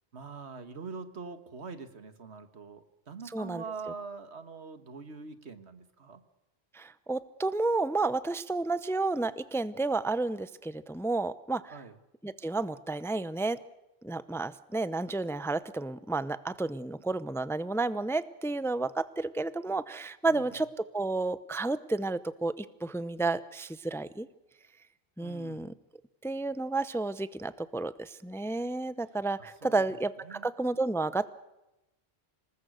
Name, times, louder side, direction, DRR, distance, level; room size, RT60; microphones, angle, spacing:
voice 1, 0.1-6.2 11.7-12.0 20.3-20.7 25.2-25.7 29.4-30.0 30.2-30.5, right 4 dB, 85° right, 10 dB, 1.9 m, -44 dB
voice 2, 3.3-3.6 6.7-11.7 12.2-13.6 14.0-24.3 25.2-25.7 26.2-31.2, right 3 dB, 5° left, 15 dB, 0.6 m, -31 dB
26.0 x 20.5 x 6.4 m, 0.94 s
omnidirectional pair, 1.1 m